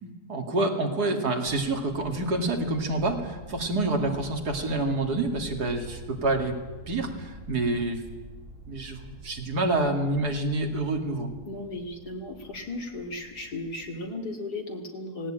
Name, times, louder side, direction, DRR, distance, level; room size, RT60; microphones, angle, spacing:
voice 1, 0.0-6.6 6.9-8.0 8.7-11.3, right 2 dB, 80° right, 3 dB, 2.9 m, -27 dB
sound 1, 1.4-13.9, right 1 dB, 50° right, 2.8 m, -47 dB
voice 2, 11.5-15.3, left 2 dB, 85° left, 3 dB, 3.1 m, -36 dB
18.5 x 17.5 x 8.9 m, 1.2 s
omnidirectional pair, 1.7 m